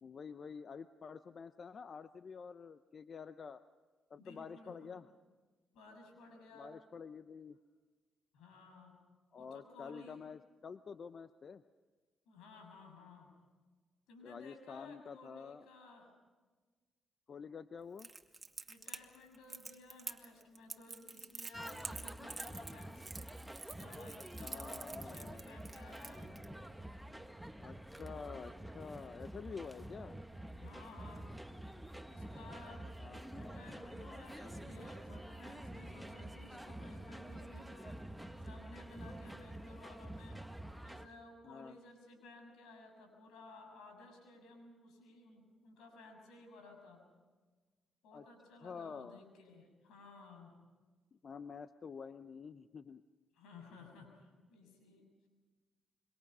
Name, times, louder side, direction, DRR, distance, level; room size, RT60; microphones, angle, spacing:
voice 1, 0.0-3.6 4.1-5.1 6.5-7.6 9.3-11.6 14.2-15.7 17.3-18.1 24.4-25.5 27.6-30.2 33.0-33.8 41.4-41.8 48.1-48.2 48.6-49.2 51.1-53.0, left 6 dB, 50° left, 12 dB, 0.7 m, -48 dB
voice 2, 4.2-5.0 5.7-6.7 8.3-9.0 9.3-10.2 12.3-13.3 14.1-16.1 18.7-23.0 23.6-26.4 30.6-31.3 32.1-32.9 33.3-38.0 38.4-40.4 40.8-47.0 48.0-50.6 53.3-55.0, left 2 dB, 85° left, 4 dB, 6.7 m, -56 dB
Crackle, 18.0-26.4, right 3 dB, 25° right, 2.4 m, -48 dB
sound 1, 21.5-41.1, right 1 dB, 5° right, 1.3 m, -48 dB
26.5 x 24.5 x 5.5 m, 1.4 s
supercardioid pair, 60°, 0 cm